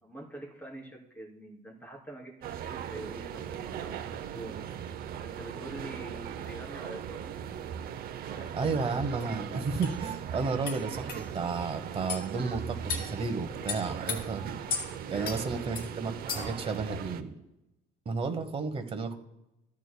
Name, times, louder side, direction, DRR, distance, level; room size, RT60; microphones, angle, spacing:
voice 1, 0.0-4.6 5.2-7.3 8.2-8.8 15.0-15.8 16.2-17.0, right 1 dB, 10° left, -1 dB, 2.9 m, -45 dB
sound 1, 2.4-17.2, right 9 dB, 65° right, 0.6 m, -39 dB
voice 2, 8.6-17.3 18.0-19.2, right 4 dB, 35° right, 8 dB, 1.0 m, -33 dB
sound 2, 9.2-9.3 9.8-10.0 10.7-10.8 11.1-11.2 12.1-12.3 12.9-13.1 13.7-14.2 14.7-14.9 15.2-15.4 15.8-15.9 16.3-16.6, left 7 dB, 60° left, 2.3 m, -34 dB
14.5 x 9.5 x 2.2 m, 0.89 s
cardioid pair, 110°, 17 cm